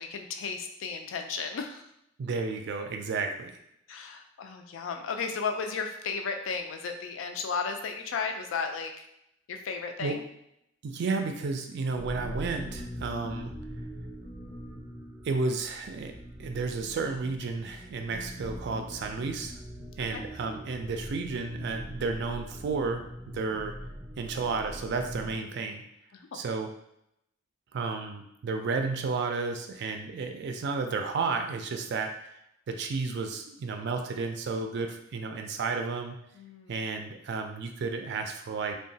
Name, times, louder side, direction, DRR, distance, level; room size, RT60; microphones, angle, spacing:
voice 1, 0.0-1.8 3.9-9.1 9.5-10.2 20.1-20.2 26.1-26.4 36.4-36.7, left 5 dB, 80° left, 5 dB, 0.4 m, -34 dB
voice 2, 2.2-3.5 10.0-10.2 10.8-13.5 15.2-16.1 16.4-19.5 20.0-23.8 24.2-25.8 26.3-26.7 27.7-32.4 32.7-36.2 36.7-38.8, right 4 dB, 60° right, 5 dB, 0.4 m, -32 dB
sound 1, 12.0-25.4, equal, 20° right, 0.6 m, -42 dB
2.9 x 2.2 x 2.7 m, 0.78 s
head